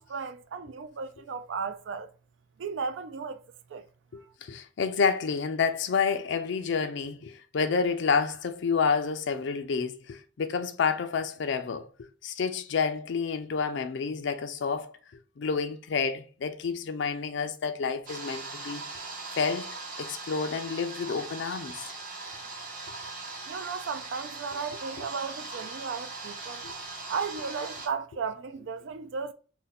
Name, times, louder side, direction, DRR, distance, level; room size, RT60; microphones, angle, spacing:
voice 1, 0.0-2.1 2.6-3.4 3.7-3.9 23.5-26.7 27.1-29.3, right 5 dB, 70° right, 0.3 m, -35 dB
voice 2, 4.1-11.9 12.2-14.9 15.4-18.8 19.4-19.7 20.0-21.9 26.6-26.7, left 5 dB, 65° left, 0.4 m, -29 dB
sound 1, 18.1-27.9, right 3 dB, 45° right, 0.7 m, -40 dB
2.6 x 2.1 x 4.0 m
head